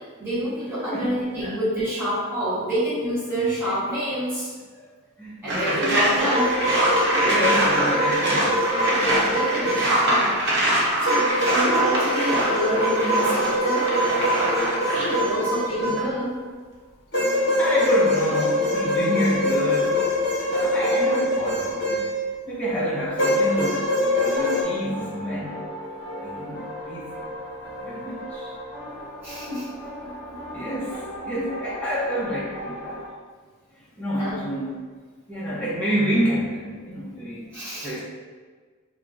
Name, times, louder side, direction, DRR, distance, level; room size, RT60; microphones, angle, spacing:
voice 1, 0.2-4.5 5.4-6.6 8.9-10.5 11.0-14.0 14.8-16.4 29.2-29.7 30.0-30.6 34.2-34.4 37.5-38.0, equal, 10° right, -12 dB, 1.2 m, -28 dB
voice 2, 5.2-6.1 7.1-9.4 11.3-11.7 15.8-15.9 17.6-20.0 20.5-22.0 22.5-23.7 24.1-25.5 26.2-27.1 27.6-28.5 30.5-33.0 34.0-34.7 35.3-37.4 37.8-38.0, equal, 5° left, -8 dB, 0.6 m, -28 dB
sound 1, 5.5-15.3 15.8-16.0, right 1 dB, 55° right, 0.8 m, -24 dB
sound 2, 6.2-10.1 11.0-16.3 17.1-22.4 23.2-24.6, equal, 55° left, 1.0 m, -23 dB
sound 3, 24.4-33.1, equal, 25° left, 1.0 m, -37 dB
2.3 x 2.0 x 3.8 m, 1.5 s
head